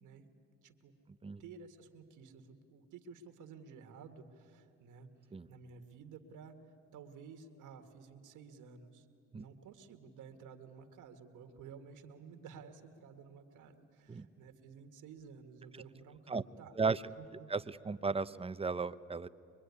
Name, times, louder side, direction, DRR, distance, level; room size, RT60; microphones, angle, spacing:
voice 1, 0.0-0.3 0.6-0.9 1.4-5.1 5.5-6.6 6.9-9.1 9.3-17.5, right 6 dB, 90° right, 7 dB, 1.9 m, -53 dB
voice 2, 17.5-19.3, right 4 dB, 20° right, 14 dB, 0.7 m, -35 dB
24.0 x 22.5 x 9.7 m, 2.5 s
cardioid pair, 90°, 30 cm